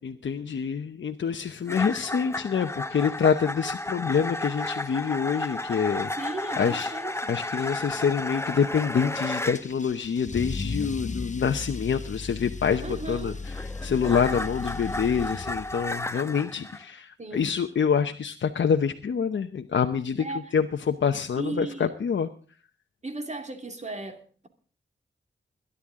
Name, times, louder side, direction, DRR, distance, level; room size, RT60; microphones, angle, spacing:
voice 1, 0.0-6.1 6.6-6.9 7.3-20.2 20.5-22.3, left 6 dB, 75° left, 0.9 m, -26 dB
sound 1, 1.7-9.7 13.0-16.8, left 2 dB, 15° left, 0.9 m, -33 dB
voice 2, 6.1-7.4 12.8-13.4 17.2-17.5 20.2-20.5 21.4-22.0 23.0-24.5, right 2 dB, 35° right, 2.5 m, -36 dB
Car / Engine starting / Accelerating revving vroom, 9.5-16.0, left 3 dB, 40° left, 1.1 m, -36 dB
21.5 x 11.5 x 3.7 m
cardioid pair, 65°, 19 cm